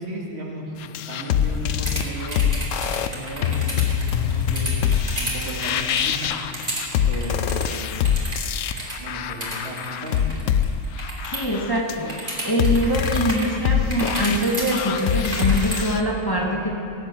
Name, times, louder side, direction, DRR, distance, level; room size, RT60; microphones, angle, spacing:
voice 1, 0.0-2.4 2.8-4.8 5.2-6.4 7.0-7.8 8.8-10.3, right 1 dB, 55° right, -1 dB, 2.3 m, -35 dB
sound 1, 0.8-16.0, left 8 dB, 80° left, 1.0 m, -24 dB
sound 2, 1.7-11.5 11.8-13.5 13.9-15.8, right 1 dB, 40° right, 3.1 m, -32 dB
voice 2, 11.3-16.8, right 1 dB, 15° left, -2 dB, 1.7 m, -24 dB
18.0 x 8.9 x 7.6 m, 2.8 s
omnidirectional pair, 1.3 m